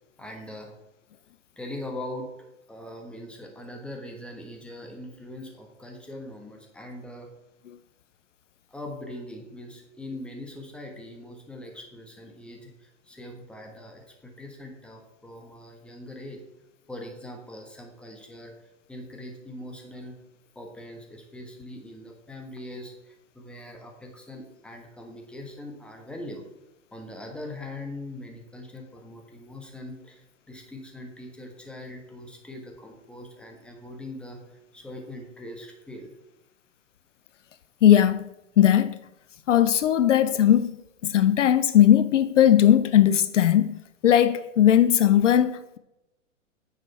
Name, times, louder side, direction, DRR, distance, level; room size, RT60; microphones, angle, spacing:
voice 1, 0.2-0.7 1.6-7.3 8.7-16.4 16.9-20.2 20.5-26.5 26.9-36.1, left 1 dB, 5° left, 1.4 m, -41 dB
voice 2, 37.8-39.0 39.5-40.7 41.0-45.8, left 10 dB, 70° left, 0.6 m, -19 dB
9.3 x 6.7 x 4.3 m
hypercardioid pair, 120°, 38 cm